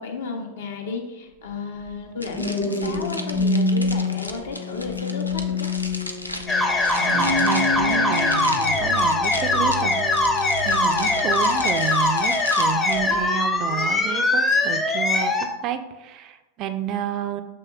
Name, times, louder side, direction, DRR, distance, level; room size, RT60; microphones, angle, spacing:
voice 1, 0.0-5.7, left 4 dB, 60° left, 3 dB, 0.7 m, -33 dB
sound 1, 1.9-12.4 13.0-13.3, left 2 dB, 35° left, 1.0 m, -28 dB
sound 2, 2.2-14.9, left 1 dB, 85° left, 0.3 m, -36 dB
sound 3, 6.5-15.5, left 2 dB, 15° left, 0.5 m, -22 dB
voice 2, 6.9-17.4, right 9 dB, 35° right, 8 dB, 0.3 m, -30 dB
6.8 x 3.1 x 2.3 m, 1.0 s
figure-of-eight pair, 90°, 0 cm